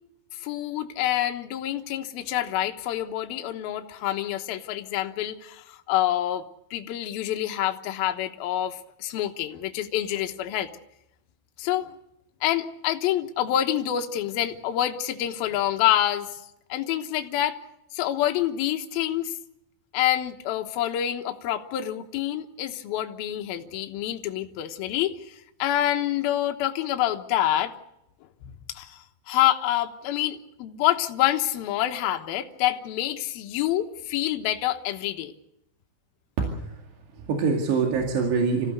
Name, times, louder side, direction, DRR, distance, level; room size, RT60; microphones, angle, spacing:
voice 1, 0.4-6.4 6.7-10.7 11.6-11.9 12.4-16.4 16.7-17.6 17.9-19.3 19.9-25.3 25.6-27.7 28.7-29.0 29.3-35.3, left 12 dB, 65° left, 5 dB, 2.7 m, -27 dB
voice 2, 36.4-36.8 37.2-38.7, right 5 dB, 70° right, 1 dB, 4.3 m, -25 dB
26.5 x 15.5 x 8.1 m, 0.85 s
omnidirectional pair, 5.2 m